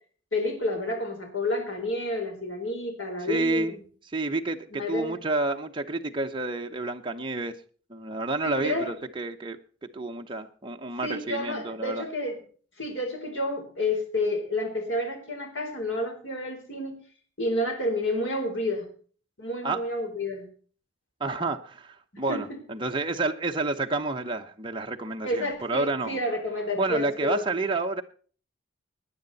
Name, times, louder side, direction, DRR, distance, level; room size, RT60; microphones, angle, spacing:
voice 1, 0.3-3.8 4.7-5.2 8.4-8.9 11.0-12.4 12.8-17.0 17.4-18.8 19.4-20.5 22.1-22.4 25.2-27.4, left 1 dB, 80° left, 3 dB, 4.1 m, -30 dB
voice 2, 3.3-3.7 4.1-7.5 7.9-9.6 9.9-12.1 19.6-19.8 21.2-26.2 26.7-28.0, right 2 dB, 25° right, 3 dB, 0.9 m, -29 dB
18.5 x 9.9 x 4.1 m, 0.42 s
head